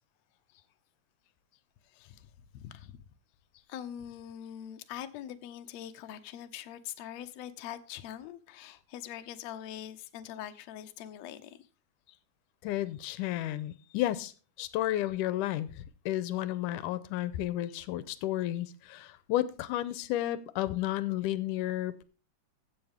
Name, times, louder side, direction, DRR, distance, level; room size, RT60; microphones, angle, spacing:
voice 1, 1.8-3.0 3.7-11.7, left 11 dB, 70° left, 1.7 m, -43 dB
voice 2, 12.6-14.3 14.6-22.0, left 14 dB, 90° left, 2.2 m, -32 dB
15.0 x 7.1 x 3.5 m
omnidirectional pair, 3.6 m